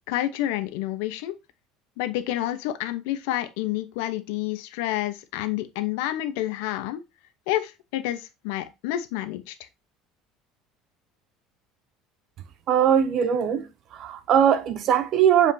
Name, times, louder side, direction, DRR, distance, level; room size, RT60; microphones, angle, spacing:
voice 1, 0.1-1.3 2.0-7.0 7.5-9.5, left 14 dB, 85° left, 0.9 m, -29 dB
voice 2, 12.7-15.5, right 9 dB, 40° right, 0.6 m, -21 dB
7.5 x 5.0 x 2.7 m
cardioid pair, 170°, 0 cm